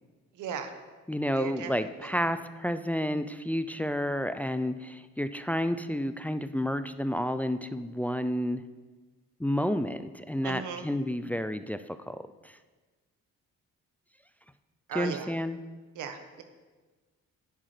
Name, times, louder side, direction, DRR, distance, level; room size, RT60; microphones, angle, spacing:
voice 1, 0.3-0.7 1.3-2.3 10.4-10.9 14.9-15.3 15.9-16.4, right 7 dB, 75° right, 7 dB, 1.1 m, -37 dB
voice 2, 1.1-8.6 9.4-12.5 15.0-15.6, equal, 5° left, 11 dB, 0.3 m, -30 dB
10.5 x 8.7 x 3.3 m, 1.3 s
cardioid pair, 90°, 30 cm